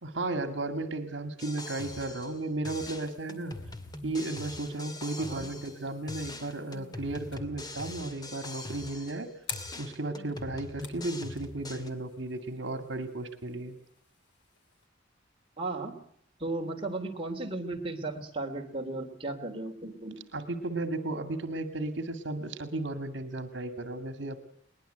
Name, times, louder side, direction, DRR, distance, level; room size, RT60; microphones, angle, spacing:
voice 1, 0.0-3.5 4.0-9.3 9.8-13.8 20.3-24.4, right 2 dB, 70° right, 9 dB, 2.1 m, -34 dB
sound 1, 1.4-2.4 2.6-5.8 6.1-9.2 9.5-11.9, left 2 dB, 20° left, 2.3 m, -42 dB
sound 2, 3.0-14.9, left 6 dB, 65° left, 4.0 m, -51 dB
voice 2, 5.2-5.5 15.6-15.9 16.4-20.1, right 2 dB, 30° right, 1 dB, 3.2 m, -35 dB
21.5 x 20.5 x 8.0 m, 0.64 s
head